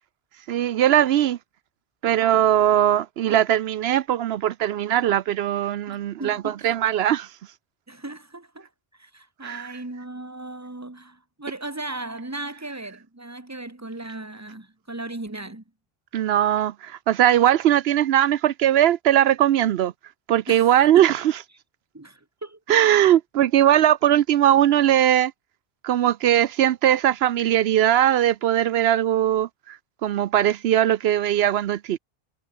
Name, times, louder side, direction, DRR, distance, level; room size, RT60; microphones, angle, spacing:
voice 1, 0.5-1.4 2.0-7.3 9.4-9.7 16.1-19.9 20.3-21.3 22.7-25.3 25.8-32.0, right 11 dB, 80° right, 0.8 m, -20 dB
voice 2, 5.9-6.7 7.9-15.6 20.5-20.7 20.9-21.1 21.9-22.6, right 2 dB, 15° right, 1.6 m, -37 dB
omnidirectional pair, 1.0 m